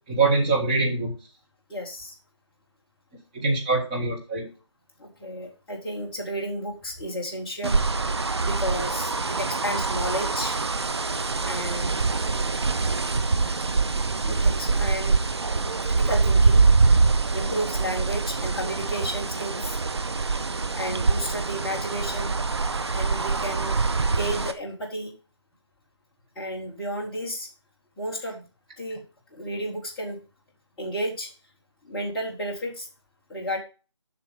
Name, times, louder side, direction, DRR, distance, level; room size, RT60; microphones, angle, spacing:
voice 1, 0.1-1.1 3.3-4.5, right 3 dB, 15° right, -1 dB, 1.4 m, -23 dB
voice 2, 1.7-2.1 5.0-7.8 8.4-10.6 11.4-12.0 14.2-15.2 15.8-16.7 17.3-19.7 20.7-22.4 22.9-23.8 24.1-25.1 26.4-27.5 28.0-28.4 28.8-29.0 29.3-30.2 30.8-31.3 31.8-32.9 33.3-33.6, equal, 5° left, -5 dB, 0.9 m, -32 dB
sound 1, 7.6-24.5, right 4 dB, 55° right, 1.0 m, -24 dB
7.5 x 6.1 x 5.1 m, 0.34 s
figure-of-eight pair, 165°, 16 cm